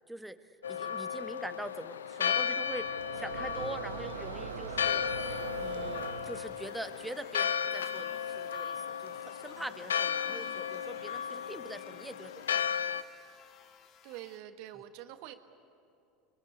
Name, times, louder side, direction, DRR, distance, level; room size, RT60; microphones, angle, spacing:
voice 1, 0.0-12.8, right 1 dB, 5° right, 9 dB, 1.4 m, -44 dB
Church bell, 0.6-13.0, left 8 dB, 90° left, 0.6 m, -35 dB
sound 1, 2.2-6.7, right 7 dB, 85° right, 1.1 m, -42 dB
sound 2, 4.8-14.4, left 10 dB, 45° left, 1.1 m, -56 dB
voice 2, 10.3-10.7 14.0-15.3, right 12 dB, 65° right, 8 dB, 1.5 m, -46 dB
25.0 x 21.5 x 9.7 m, 2.5 s
hypercardioid pair, 85°, 0 cm